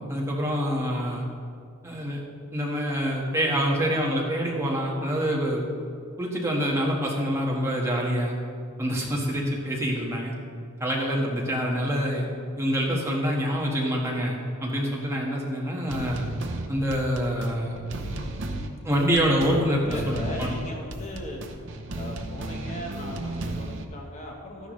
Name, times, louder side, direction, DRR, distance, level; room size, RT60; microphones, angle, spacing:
voice 1, 0.1-1.2 1.8-2.2 2.5-5.6 6.2-8.3 8.8-10.3 10.8-12.3 12.6-16.2 16.7-17.7 18.8-20.5, equal, 10° right, -3 dB, 1.5 m, -26 dB
sound 1, 15.9-23.8, right 1 dB, 55° right, 0.8 m, -34 dB
voice 2, 19.8-21.6 21.9-24.7, left 1 dB, 30° left, -1 dB, 1.1 m, -38 dB
13.5 x 10.5 x 3.2 m, 2.3 s
head